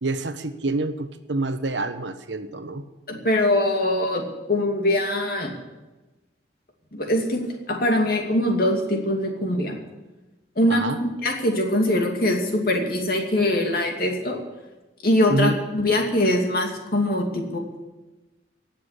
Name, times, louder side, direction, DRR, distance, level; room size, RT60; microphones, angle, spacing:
voice 1, 0.0-2.8 10.7-11.0 15.3-15.6, right 2 dB, 80° right, 9 dB, 1.2 m, -27 dB
voice 2, 3.1-5.5 6.9-7.4 7.7-9.8 10.6-14.4 15.0-17.6, left 1 dB, 55° left, 2 dB, 2.6 m, -22 dB
17.5 x 7.3 x 9.8 m, 1.1 s
head